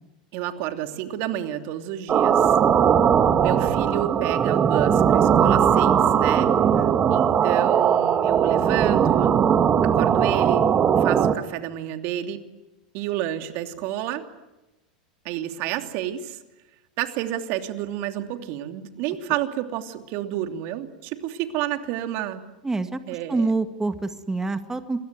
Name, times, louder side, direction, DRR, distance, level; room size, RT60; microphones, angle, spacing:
voice 1, 0.3-2.6 3.4-6.5 7.1-9.3 9.8-10.6 11.0-12.4 12.9-14.2 15.2-16.4 17.0-22.4 23.1-23.5, right 12 dB, 55° right, 7 dB, 2.9 m, -30 dB
sound 1, 2.1-11.3, right 8 dB, 30° right, 1.9 m, -19 dB
voice 2, 2.8-3.1 6.7-7.0 22.6-23.0 23.3-25.0, right 3 dB, 10° right, 9 dB, 2.0 m, -27 dB
28.5 x 22.0 x 9.5 m, 1.0 s
hypercardioid pair, 100°, 4 cm